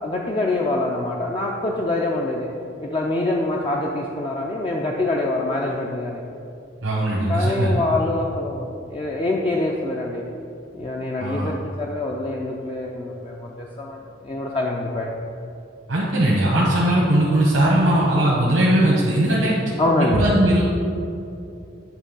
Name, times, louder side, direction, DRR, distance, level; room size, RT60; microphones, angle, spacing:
voice 1, 0.0-2.5 2.8-6.2 7.3-10.2 10.7-15.3 19.8-20.3, left 2 dB, 25° left, -2 dB, 0.4 m, -25 dB
voice 2, 6.8-7.8 11.2-11.5 15.9-19.5 20.1-20.8, right 1 dB, 85° right, -7 dB, 1.1 m, -19 dB
8.7 x 3.3 x 5.3 m, 2.6 s
head